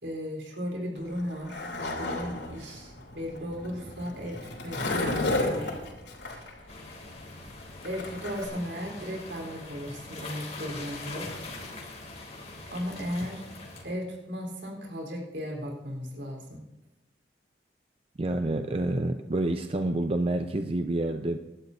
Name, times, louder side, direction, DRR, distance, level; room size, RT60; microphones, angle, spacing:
voice 1, 0.0-4.4 4.6-5.8 6.2-6.5 7.8-11.4 12.7-13.4 13.8-16.6, equal, 75° right, 1 dB, 4.0 m, -36 dB
Skateboard, 1.0-8.5, left 2 dB, 75° left, 3.4 m, -33 dB
sound 1, 6.7-13.8, left 2 dB, 35° left, 2.8 m, -42 dB
voice 2, 18.2-21.4, right 2 dB, 30° right, 6 dB, 0.5 m, -28 dB
26.5 x 12.0 x 2.8 m, 0.97 s
head